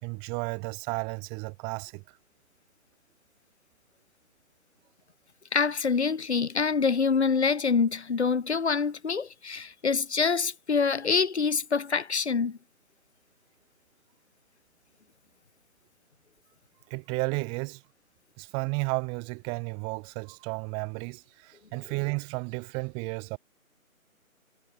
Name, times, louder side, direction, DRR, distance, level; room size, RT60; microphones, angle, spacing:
voice 1, 0.0-2.0 16.9-17.8 18.4-23.4, right 34 dB, 10° right, 2.4 m, -33 dB
voice 2, 5.5-12.6, left 5 dB, 50° left, 3.0 m, -26 dB
figure-of-eight pair, 150°, 42 cm